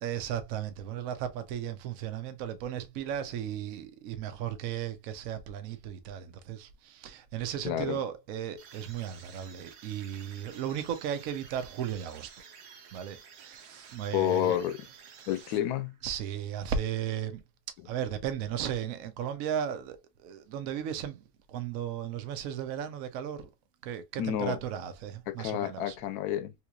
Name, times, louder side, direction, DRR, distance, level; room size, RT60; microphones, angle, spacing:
voice 1, 0.0-12.3 12.9-13.6 13.9-14.6 15.2-15.3 16.0-17.4 17.8-23.5 23.8-26.0, right 9 dB, 70° right, 1.0 m, -35 dB
voice 2, 7.6-8.0 14.1-14.8 15.3-15.9 24.2-24.6 25.3-26.5, left 12 dB, 80° left, 1.1 m, -29 dB
sound 1, 8.6-16.1, right 7 dB, 85° right, 1.3 m, -52 dB
3.8 x 2.9 x 2.3 m
omnidirectional pair, 1.6 m